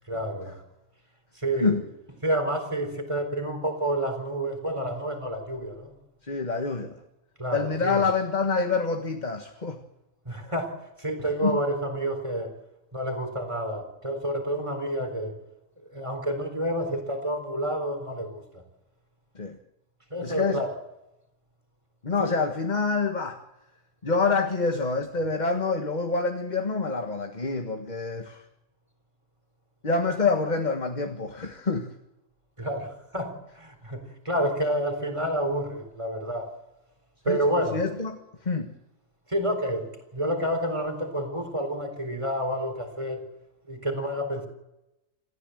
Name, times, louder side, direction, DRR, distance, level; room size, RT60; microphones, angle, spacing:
voice 1, 0.1-0.6 1.4-1.8 2.2-5.9 7.4-8.1 10.3-12.5 12.9-15.4 15.9-18.6 20.1-20.7 22.2-22.4 32.6-36.5 37.2-37.9 39.3-43.2 43.7-44.5, right 1 dB, 25° right, 6 dB, 4.0 m, -29 dB
voice 2, 6.3-6.9 7.5-9.8 11.4-11.6 19.3-19.6 20.2-20.6 22.0-23.4 24.0-28.4 29.8-31.9 37.3-37.4 37.7-38.2 38.4-38.7, left 4 dB, 35° left, 6 dB, 1.7 m, -26 dB
27.5 x 14.5 x 7.9 m, 0.91 s
omnidirectional pair, 1.3 m